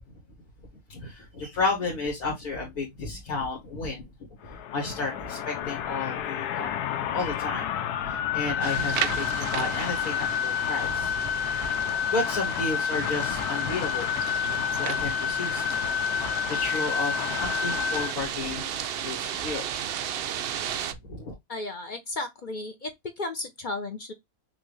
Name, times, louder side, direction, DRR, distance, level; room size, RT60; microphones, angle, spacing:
voice 1, 0.9-4.1 4.5-6.7 7.1-7.7 8.0-11.2 11.7-11.8 12.1-14.2 14.4-15.8 16.1-19.7 20.8-21.3, left 3 dB, 70° left, 1.9 m, -32 dB
sound 1, 4.4-18.1, left 9 dB, 90° left, 1.2 m, -29 dB
sound 2, 8.6-20.9, right 9 dB, 75° right, 0.5 m, -35 dB
voice 2, 21.5-24.1, left 2 dB, 45° left, 0.6 m, -34 dB
6.0 x 2.6 x 3.1 m
omnidirectional pair, 1.6 m